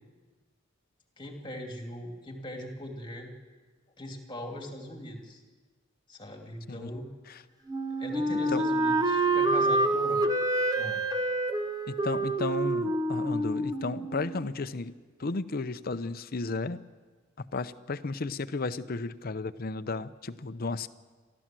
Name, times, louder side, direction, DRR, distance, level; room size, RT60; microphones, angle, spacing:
voice 1, 1.2-3.3 4.0-5.4 6.1-7.1 8.0-10.3 10.7-11.0, equal, 25° left, 2 dB, 2.6 m, -40 dB
Wind instrument woodwind instrument, 7.7-14.5, right 2 dB, 20° right, 1.2 m, -27 dB
voice 2, 11.9-14.9 15.2-16.8 17.5-20.9, left 3 dB, 50° left, 12 dB, 0.7 m, -33 dB
29.0 x 12.5 x 7.6 m, 1.4 s
head